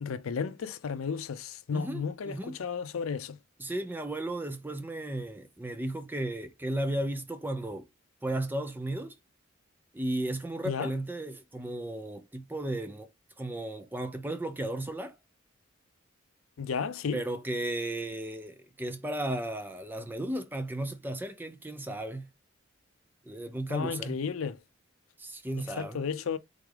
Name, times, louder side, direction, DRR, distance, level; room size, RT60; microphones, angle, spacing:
voice 1, 0.0-3.4 10.6-10.9 16.6-17.2 23.7-24.6 25.8-26.4, left 6 dB, 90° left, 0.5 m, -33 dB
voice 2, 1.7-2.6 3.6-7.9 8.2-9.1 9.9-13.1 13.4-15.1 17.1-22.3 23.3-24.2 25.2-26.0, right 1 dB, 10° right, 0.5 m, -34 dB
3.8 x 3.5 x 3.2 m
head